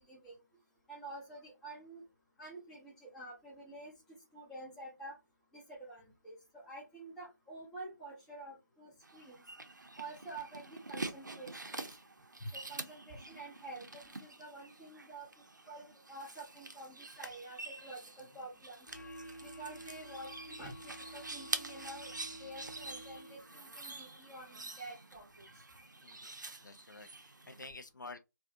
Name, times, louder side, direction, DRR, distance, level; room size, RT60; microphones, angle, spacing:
voice 1, 0.1-0.4 0.9-2.0 2.4-4.0 4.3-5.2 5.5-9.4 10.0-11.7 12.4-15.3 15.7-18.9 19.4-22.1 22.4-25.2, right 2 dB, 5° left, 0.5 m, -49 dB
sound 1, 9.0-27.7, right 2 dB, 75° right, 0.5 m, -46 dB
sound 2, 18.9-23.7, right 1 dB, 55° left, 0.9 m, -51 dB
voice 2, 26.0-28.2, left 3 dB, 75° left, 0.5 m, -51 dB
2.4 x 2.4 x 2.5 m
figure-of-eight pair, 160°, 10 cm